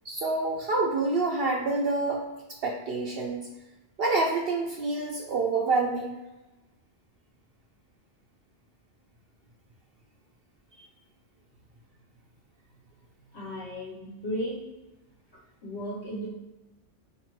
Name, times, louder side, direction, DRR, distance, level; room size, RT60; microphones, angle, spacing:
voice 1, 0.1-2.2 2.6-3.5 4.0-6.2, right 3 dB, 65° right, 0 dB, 0.7 m, -27 dB
voice 2, 13.3-14.6 15.6-16.3, equal, 65° left, -5 dB, 1.2 m, -34 dB
4.3 x 2.8 x 3.0 m, 1.0 s
omnidirectional pair, 1.3 m